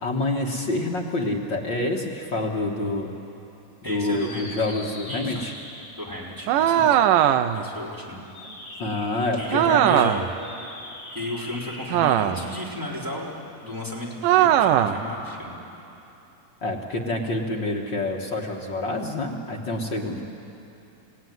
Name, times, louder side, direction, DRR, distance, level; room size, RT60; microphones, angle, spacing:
voice 1, 0.0-3.1 3.8-5.5 8.8-10.1 16.6-20.2, left 2 dB, 45° left, -1 dB, 1.6 m, -27 dB
voice 2, 3.8-4.8 5.1-5.4 6.0-7.0 7.5-8.2 9.3-10.2 11.1-13.3 13.6-15.6, left 1 dB, 5° right, -5 dB, 3.7 m, -34 dB
sound 1, 4.0-6.1 8.2-9.2 10.2-12.4 14.5-15.4, left 2 dB, 65° left, 8.1 m, -42 dB
sound 2, 6.5-7.7 9.5-10.4 11.9-12.6 14.2-15.0, right 11 dB, 80° right, 2.3 m, -19 dB
30.0 x 16.5 x 9.5 m, 3.0 s
omnidirectional pair, 3.8 m